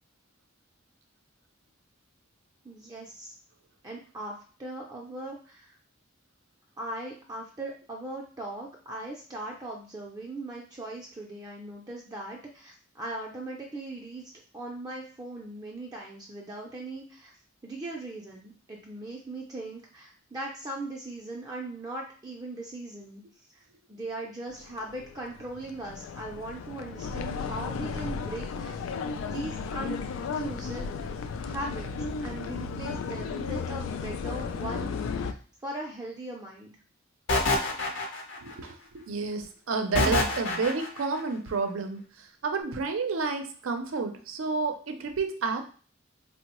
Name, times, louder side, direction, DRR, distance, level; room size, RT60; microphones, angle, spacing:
voice 1, 2.6-3.4 3.8-5.8 6.8-14.2 14.5-17.3 17.6-23.2 23.9-28.8 29.2-30.0 30.3-31.1 31.4-31.9 32.2-35.3 35.6-36.7, right 2 dB, 20° right, -2 dB, 0.4 m, -39 dB
sound 1, 24.5-35.3, left 5 dB, 85° left, 0.3 m, -34 dB
sound 2, 37.3-38.5 39.9-41.0, left 2 dB, 70° left, 0.7 m, -26 dB
voice 2, 38.4-45.7, right 4 dB, 90° right, 6 dB, 0.5 m, -30 dB
3.6 x 2.0 x 2.9 m, 0.40 s
head